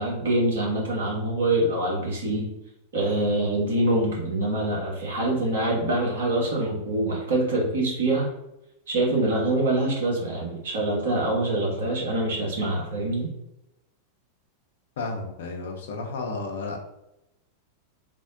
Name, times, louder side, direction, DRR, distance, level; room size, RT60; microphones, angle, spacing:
voice 1, 0.0-2.5 2.9-8.3 8.9-13.3, right 1 dB, 60° right, -3 dB, 1.1 m, -25 dB
voice 2, 15.0-16.8, left 3 dB, 60° left, 2 dB, 0.5 m, -32 dB
3.5 x 2.0 x 2.5 m, 0.89 s
figure-of-eight pair, 90°, 0 cm